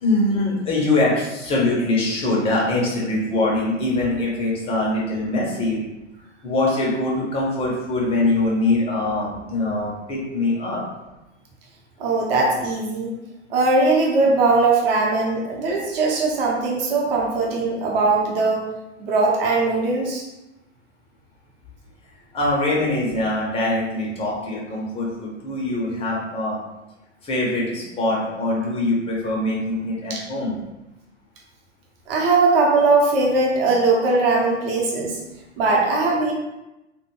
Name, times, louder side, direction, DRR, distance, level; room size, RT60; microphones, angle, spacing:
voice 1, 0.0-5.8 6.4-10.8 22.3-26.6 27.2-30.5, left 2 dB, 15° left, -4 dB, 0.6 m, -23 dB
voice 2, 12.0-13.1 13.5-18.6 19.0-20.2 30.1-30.2 32.1-35.2 35.6-36.3, right 3 dB, 50° right, -2 dB, 0.8 m, -20 dB
2.2 x 2.1 x 3.0 m, 0.97 s
figure-of-eight pair, 100°, 37 cm